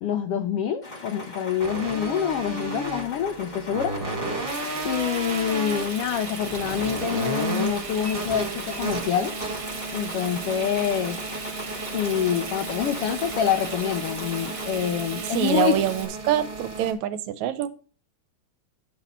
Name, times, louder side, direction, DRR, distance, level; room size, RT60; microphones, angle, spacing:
voice 1, 0.0-3.9 4.8-9.3 9.9-11.2 11.9-15.8, left 9 dB, 75° left, 6 dB, 1.4 m, -26 dB
sound 1, 0.8-14.7, left 2 dB, 25° left, 0.9 m, -40 dB
sound 2, 1.6-16.9, right 2 dB, 20° right, 1.8 m, -34 dB
Frying (food), 4.5-16.1, right 4 dB, 40° right, 1.4 m, -37 dB
voice 2, 15.3-17.7, right 11 dB, 85° right, 13 dB, 1.9 m, -25 dB
10.0 x 6.0 x 4.2 m, 0.37 s
omnidirectional pair, 3.3 m